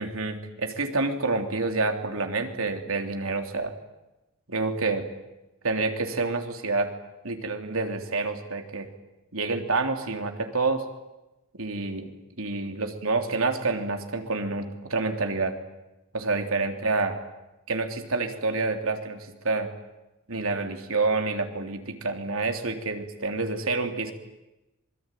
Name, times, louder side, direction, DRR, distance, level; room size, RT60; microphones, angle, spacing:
voice 1, 0.0-3.7 4.5-5.1 5.6-6.9 7.2-8.9 9.3-10.8 11.5-12.1 12.4-15.6 16.1-17.2 17.7-19.2 19.4-19.7 20.3-24.1, right 3 dB, 85° right, 5 dB, 3.4 m, -28 dB
26.5 x 22.0 x 9.2 m, 0.99 s
head